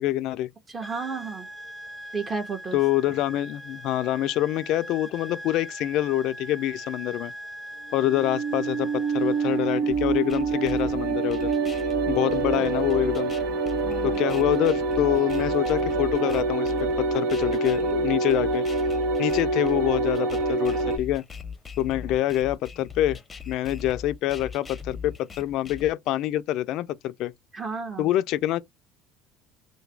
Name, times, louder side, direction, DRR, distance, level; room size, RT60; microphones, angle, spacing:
voice 1, 0.0-0.5 2.7-7.3 7.9-11.5 12.1-13.3 14.0-18.7 19.2-21.2 21.8-23.2 23.5-27.3 28.0-28.6, left 14 dB, 65° left, 0.4 m, -26 dB
voice 2, 0.7-1.5 2.1-2.8 12.6-12.7 13.8-14.2 27.5-28.1, right 4 dB, 25° right, 1.2 m, -33 dB
sound 1, 0.8-9.7, equal, 5° right, 1.0 m, -41 dB
sound 2, 8.0-21.0, right 3 dB, 70° right, 1.0 m, -26 dB
sound 3, 9.9-25.9, left 6 dB, 25° left, 0.7 m, -39 dB
3.2 x 2.2 x 3.3 m
supercardioid pair, 90°, 0 cm